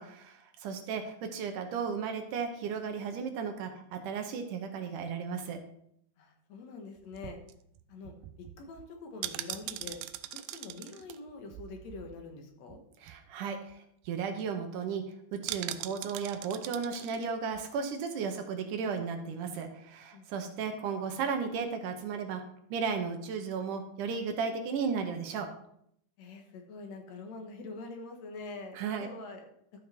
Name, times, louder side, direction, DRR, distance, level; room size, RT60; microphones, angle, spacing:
voice 1, 0.0-5.6 13.0-15.0 15.3-22.4 22.7-25.5 28.8-29.1, right 6 dB, 70° right, 6 dB, 2.4 m, -35 dB
voice 2, 0.7-1.0 6.2-7.4 7.9-10.0 10.3-12.8 20.1-20.6 26.2-29.4, left 3 dB, 60° left, 3 dB, 2.3 m, -45 dB
sound 1, 7.0-12.4 12.7-12.8 13.1-13.3 13.7-13.8 14.0-14.4 15.5-17.2 17.5-17.7, right 14 dB, 90° right, 2.3 m, -42 dB
13.0 x 5.7 x 4.4 m, 0.71 s
omnidirectional pair, 4.0 m